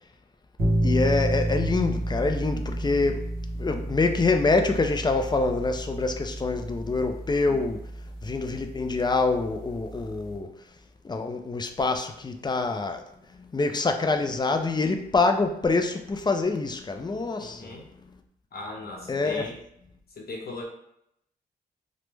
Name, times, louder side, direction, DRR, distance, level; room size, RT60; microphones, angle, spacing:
sound 1, 0.6-10.4, right 1 dB, 55° right, 1.1 m, -31 dB
voice 1, 0.8-3.3 3.6-7.8 8.2-10.5 11.0-13.0 13.3-17.8 19.1-19.5, left 3 dB, 25° left, 0.4 m, -26 dB
voice 2, 17.4-17.9 18.5-19.6 20.2-20.6, left 2 dB, 60° left, 0.7 m, -38 dB
3.0 x 2.1 x 3.3 m
cardioid pair, 65°, 17 cm